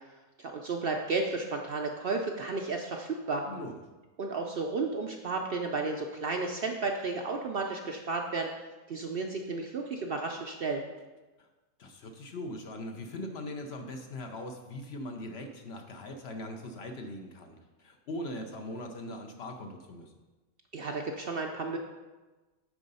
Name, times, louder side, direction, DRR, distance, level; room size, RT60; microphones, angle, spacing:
voice 1, 0.4-3.4 4.2-8.5 8.9-10.8 20.7-21.8, right 3 dB, 60° right, 2 dB, 0.6 m, -33 dB
voice 2, 3.4-3.8 11.4-11.5 11.8-20.1, left 1 dB, 55° left, 4 dB, 0.9 m, -40 dB
9.4 x 3.8 x 5.4 m, 1.2 s
omnidirectional pair, 1.4 m